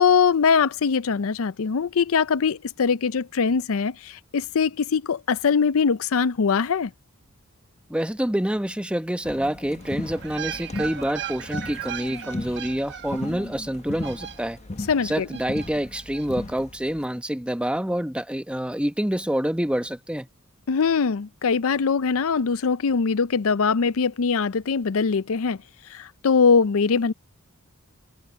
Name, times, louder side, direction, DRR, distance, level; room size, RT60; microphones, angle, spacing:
voice 1, 0.0-6.9 14.9-15.3 20.7-25.6 25.9-27.1, left 5 dB, 70° left, 0.5 m, -22 dB
voice 2, 7.9-14.6 15.0-20.3, equal, 5° right, 0.9 m, -27 dB
sound 1, 9.2-17.0, left 2 dB, 30° left, 1.1 m, -37 dB
sound 2, 9.8-14.8 15.3-16.3 16.5-16.6, right 9 dB, 55° right, 1.0 m, -37 dB
head